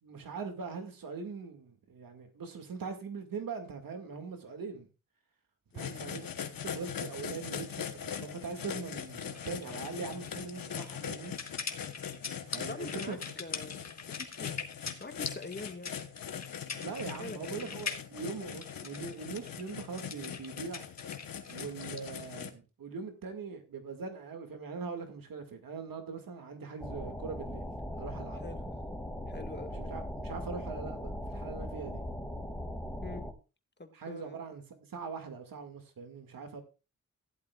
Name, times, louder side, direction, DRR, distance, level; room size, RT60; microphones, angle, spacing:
voice 1, 0.0-4.9 5.7-6.3 6.6-11.3 12.5-13.2 16.8-20.9 21.5-27.7 28.0-28.4 29.7-32.0 33.9-34.6 34.9-36.6, right 5 dB, 85° right, 2.1 m, -41 dB
sound 1, 5.8-22.5, left 8 dB, 90° left, 1.2 m, -41 dB
sound 2, 9.3-22.1, left 5 dB, 50° left, 1.7 m, -42 dB
voice 2, 12.6-13.8 14.2-14.5 15.0-15.9 17.2-17.7 28.4-28.6 29.3-29.7 33.0-33.3 33.8-34.4, left 3 dB, 30° left, 1.7 m, -44 dB
sound 3, 26.8-33.3, equal, 5° left, 2.1 m, -39 dB
15.0 x 11.5 x 2.4 m
cardioid pair, 70°, 33 cm